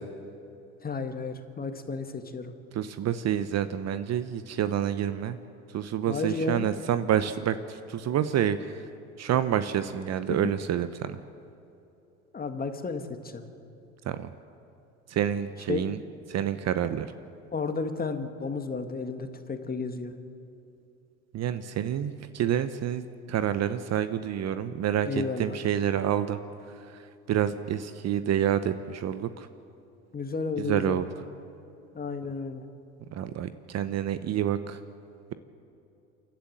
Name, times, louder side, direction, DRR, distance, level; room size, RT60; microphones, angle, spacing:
voice 1, 0.8-2.5 6.1-6.7 10.3-10.5 12.3-13.5 15.7-15.9 17.5-20.1 25.0-25.6 30.1-31.0 31.9-32.7, left 4 dB, 20° left, 7 dB, 1.9 m, -32 dB
voice 2, 2.7-5.4 5.7-8.8 9.2-11.2 14.1-14.3 15.1-16.0 16.3-17.1 21.3-25.1 25.4-26.4 27.3-29.5 30.6-31.1 33.1-34.8, right 10 dB, 40° right, 12 dB, 0.9 m, -28 dB
28.5 x 12.0 x 7.8 m, 2.8 s
hypercardioid pair, 80°, 40 cm